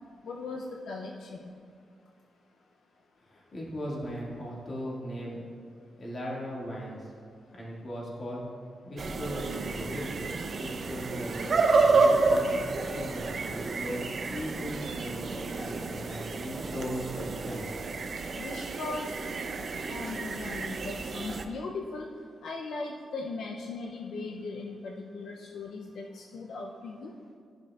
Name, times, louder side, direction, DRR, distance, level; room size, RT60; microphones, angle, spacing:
voice 1, 0.2-1.4 18.4-19.3 19.9-22.1 22.4-27.1, left 3 dB, 80° left, 0 dB, 0.5 m, -38 dB
voice 2, 3.3-5.4 6.0-7.1 7.5-8.4 8.8-10.2 10.5-12.5 12.8-17.7, equal, 45° left, -5 dB, 1.9 m, -38 dB
sound 1, 9.0-21.4, right 3 dB, 50° right, 0.5 m, -30 dB
10.5 x 6.2 x 2.3 m, 2.2 s
cardioid pair, 95°, 0 cm